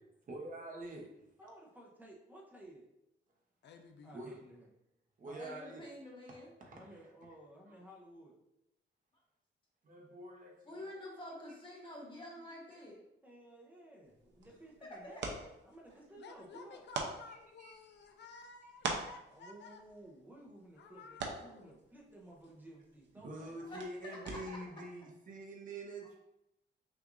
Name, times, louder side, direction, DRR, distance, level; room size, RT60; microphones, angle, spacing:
voice 1, 0.3-1.1 4.1-4.4 5.2-5.9 6.6-6.9 7.7-7.8 9.8-10.9 17.6-17.7 23.2-25.0 25.3-26.2, right 1 dB, 45° right, -1 dB, 0.9 m, -46 dB
voice 2, 1.4-2.9 4.0-4.7 5.3-5.5 6.7-8.3 13.2-15.4 15.6-16.8 19.3-23.7, right 1 dB, 10° right, -4 dB, 0.6 m, -55 dB
voice 3, 3.6-4.2 16.2-19.8 20.8-21.8, left 4 dB, 65° left, 5 dB, 0.4 m, -54 dB
voice 4, 5.4-6.5 10.7-13.0 23.6-24.4, left 1 dB, 25° left, -3 dB, 1.1 m, -48 dB
sound 1, 14.0-24.8, right 4 dB, 70° right, 0.7 m, -46 dB
5.9 x 2.5 x 2.5 m, 0.85 s
wide cardioid pair, 155°, 19 cm